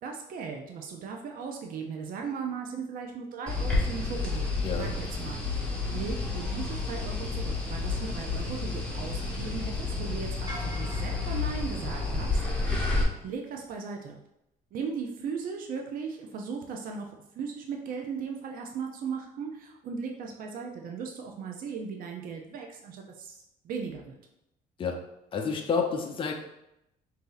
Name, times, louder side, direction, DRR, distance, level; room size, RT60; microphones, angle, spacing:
voice 1, 0.0-5.4 5.8-12.8 13.2-14.2 14.7-17.1 17.3-24.2, right 5 dB, 55° right, 2 dB, 0.6 m, -37 dB
sound 1, 3.5-13.0, left 3 dB, 5° left, 1.1 m, -30 dB
sound 2, 10.5-12.8, equal, 20° right, 1.5 m, -45 dB
voice 2, 25.3-26.3, left 5 dB, 30° left, 2 dB, 0.6 m, -29 dB
3.9 x 2.8 x 3.8 m, 0.84 s
cardioid pair, 110°, 17 cm